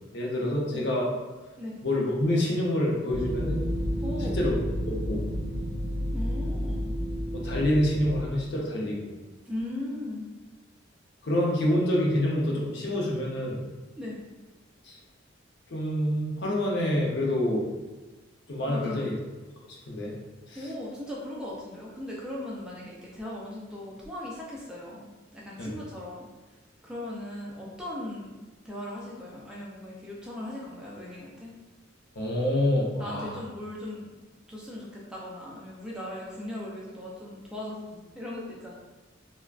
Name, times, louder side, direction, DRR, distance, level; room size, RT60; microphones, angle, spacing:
voice 1, 0.1-1.1 1.8-3.6 4.2-4.5 4.9-5.2 7.3-9.1 11.2-13.6 14.8-15.0 15.7-17.7 18.5-19.1 19.9-20.1 20.5-20.7 25.6-25.7 32.2-33.4, left 1 dB, 55° left, -3 dB, 0.6 m, -27 dB
sound 1, 3.1-8.3, equal, 65° right, 0.7 m, -31 dB
voice 2, 4.0-4.4 6.1-6.9 9.5-10.2 14.0-14.2 18.6-19.2 20.5-26.3 26.8-31.5 33.0-34.1 34.5-38.8, left 1 dB, 5° right, -5 dB, 0.3 m, -38 dB
3.4 x 2.1 x 2.3 m, 1.2 s
head